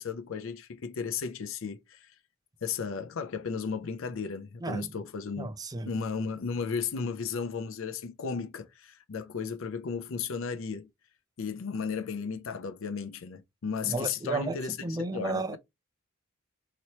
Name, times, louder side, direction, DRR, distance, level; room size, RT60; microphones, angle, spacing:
voice 1, 0.0-2.1 2.6-5.5 5.8-10.9 11.4-15.6, left 5 dB, 70° left, 0.5 m, -34 dB
voice 2, 5.4-5.9 13.9-15.6, right 2 dB, 20° right, 0.4 m, -33 dB
2.9 x 2.9 x 2.8 m
head